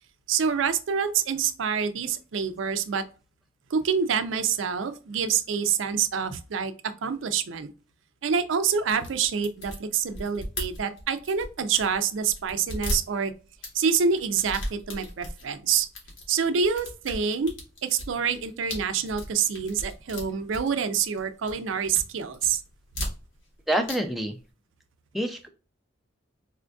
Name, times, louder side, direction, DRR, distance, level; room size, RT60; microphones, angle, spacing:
voice 1, 0.3-3.0 3.7-6.7 7.0-7.7 8.2-13.3 13.7-15.9 16.3-17.5 17.8-22.6, right 6 dB, 80° right, 10 dB, 0.4 m, -26 dB
sound 1, 8.9-12.0 12.3-13.7 14.2-15.4 15.8-16.3 16.6-21.2 21.5-22.0 22.3-23.6 23.8-24.0 24.2-24.3, left 1 dB, 80° left, 1.3 m, -36 dB
voice 2, 23.7-24.4 25.1-25.5, right 1 dB, ahead, 3 dB, 0.3 m, -27 dB
4.2 x 2.5 x 2.2 m, 0.34 s
head